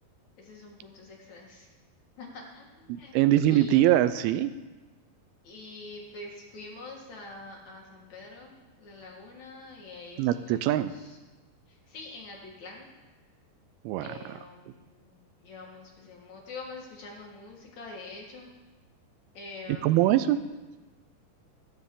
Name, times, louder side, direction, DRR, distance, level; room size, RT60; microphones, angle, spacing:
voice 1, 0.4-1.7 2.2-3.1 3.4-3.8 5.4-11.2 11.7-12.9 14.0-18.5 19.3-20.3, left 3 dB, 55° left, -1 dB, 2.5 m, -45 dB
voice 2, 2.9-4.5 10.2-10.9 13.9-14.4 19.8-20.4, right 13 dB, 85° right, 12 dB, 2.4 m, -23 dB
14.0 x 13.0 x 3.7 m, 1.2 s
omnidirectional pair, 4.6 m